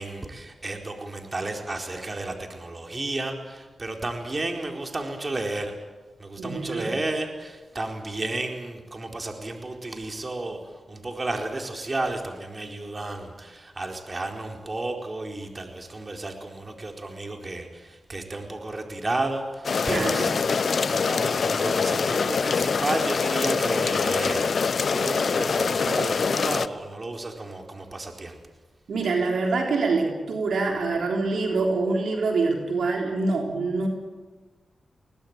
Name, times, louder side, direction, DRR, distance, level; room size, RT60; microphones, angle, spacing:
voice 1, 0.0-5.8 6.2-28.4, right 2 dB, 35° right, 3 dB, 4.4 m, -32 dB
voice 2, 6.4-6.9 19.9-20.3 28.9-33.9, right 3 dB, 80° right, 1 dB, 3.8 m, -25 dB
sound 1, 19.6-26.7, left 5 dB, 65° left, 0.9 m, -24 dB
22.5 x 19.0 x 9.0 m, 1.3 s
cardioid pair, 50°, 0 cm